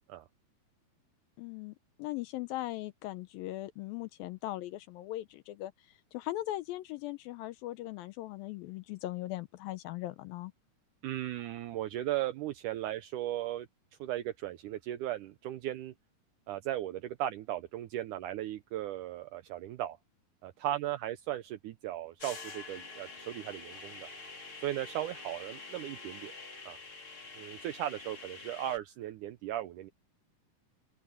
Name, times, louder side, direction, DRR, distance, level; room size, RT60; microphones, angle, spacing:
voice 1, 1.4-10.5, left 16 dB, 85° left, 2.4 m, -39 dB
voice 2, 11.0-13.7 14.0-15.9 16.5-20.0 20.4-24.1 24.6-26.3 26.7-26.8 27.4-29.9, right 13 dB, 80° right, 1.8 m, -37 dB
sound 1, 22.2-28.8, left 3 dB, 35° left, 4.9 m, -47 dB
open air
omnidirectional pair, 4.3 m